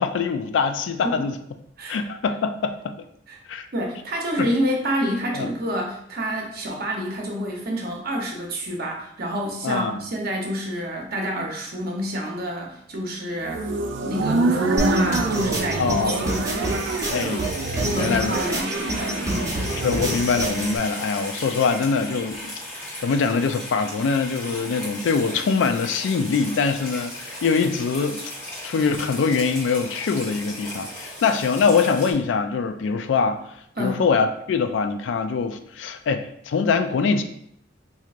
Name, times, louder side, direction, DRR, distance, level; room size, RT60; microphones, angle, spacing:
voice 1, 0.0-1.3 1.9-3.0 3.5-3.7 4.4-4.5 5.3-5.5 9.6-10.0 15.8-16.2 17.1-17.5 18.0-18.4 19.8-28.2 28.6-33.4 33.8-37.2, left 5 dB, 80° left, 8 dB, 0.3 m, -23 dB
voice 2, 3.7-13.7 14.0-16.8 17.8-19.5 33.8-34.0, equal, 55° right, 0 dB, 0.8 m, -28 dB
sound 1, 13.4-20.3, right 3 dB, 90° right, 0.4 m, -26 dB
sound 2, 14.8-20.8, right 1 dB, 20° right, 0.8 m, -28 dB
sound 3, 14.9-32.1, left 1 dB, 15° left, 1.2 m, -36 dB
4.5 x 2.7 x 2.4 m, 0.72 s
head